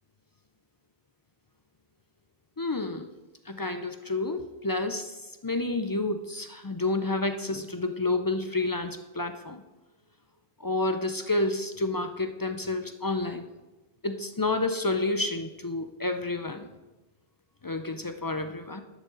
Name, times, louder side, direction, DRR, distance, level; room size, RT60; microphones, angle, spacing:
voice 1, 2.6-3.1 3.5-9.6 10.6-13.5 14.0-16.7 17.6-18.8, left 2 dB, 35° left, 7 dB, 0.3 m, -30 dB
12.0 x 7.9 x 3.8 m, 1.1 s
omnidirectional pair, 1.1 m